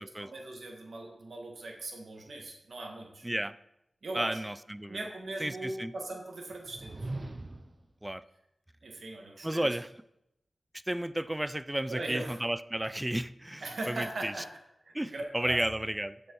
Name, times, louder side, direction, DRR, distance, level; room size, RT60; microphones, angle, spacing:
voice 1, 0.0-3.3 4.0-4.4 4.9-7.1 8.8-9.8 11.9-12.4 13.6-14.5 14.8-15.6, right 2 dB, 65° right, 1 dB, 1.7 m, -39 dB
voice 2, 3.2-3.5 4.1-5.0 5.4-5.9 8.0-8.2 9.4-9.9 10.9-14.3 14.9-16.2, right 1 dB, 10° right, 15 dB, 0.4 m, -33 dB
sound 1, 6.5-7.9, right 2 dB, 35° right, 0.8 m, -40 dB
15.0 x 6.2 x 4.7 m, 0.84 s
wide cardioid pair, 125°, 0 cm